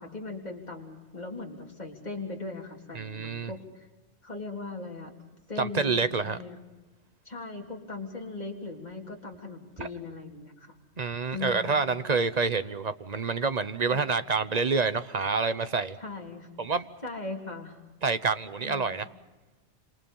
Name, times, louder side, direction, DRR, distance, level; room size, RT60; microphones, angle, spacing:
voice 1, 0.0-3.9 4.2-5.2 5.5-6.0 6.2-6.7 7.3-10.7 11.3-11.8 13.9-14.1 15.8-16.5 17.0-17.8 18.6-19.0, left 3 dB, 35° left, 0 dB, 3.5 m, -39 dB
voice 2, 2.9-3.5 5.6-6.4 11.0-16.0 16.6-16.9 18.0-19.1, right 4 dB, 35° right, 12 dB, 0.9 m, -27 dB
27.5 x 26.5 x 5.5 m, 1.2 s
omnidirectional pair, 1.2 m